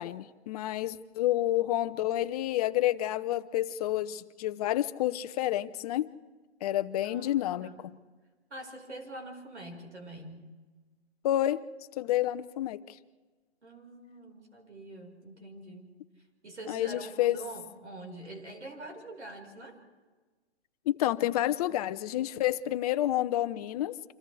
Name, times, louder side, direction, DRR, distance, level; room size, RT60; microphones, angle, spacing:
voice 1, 0.0-6.1 6.6-7.7 11.2-11.6 12.0-12.9 16.7-17.4 20.9-24.0, left 13 dB, 35° left, 12 dB, 0.8 m, -29 dB
voice 2, 7.0-7.9 8.5-10.5 13.6-15.9 16.4-19.8, right 1 dB, 85° right, 2 dB, 5.3 m, -45 dB
29.5 x 26.0 x 3.5 m, 1.3 s
hypercardioid pair, 130°, 33 cm